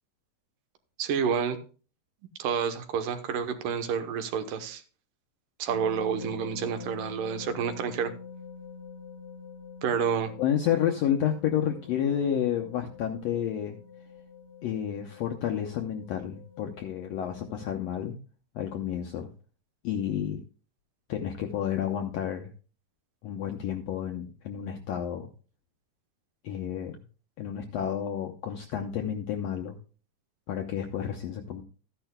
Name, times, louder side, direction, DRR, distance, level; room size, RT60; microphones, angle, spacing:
voice 1, 1.0-1.6 2.4-4.8 5.6-8.1 9.8-10.3, right 7 dB, 80° right, 8 dB, 2.6 m, -29 dB
sound 1, 5.7-17.8, left 5 dB, 60° left, 1.4 m, -45 dB
voice 2, 10.4-13.8 14.6-18.2 18.5-19.3 19.8-20.4 21.1-22.5 23.2-25.3 26.4-27.0 27.4-29.8 30.5-31.6, left 9 dB, 80° left, 3 dB, 1.5 m, -30 dB
13.5 x 10.5 x 2.2 m, 0.37 s
omnidirectional pair, 3.8 m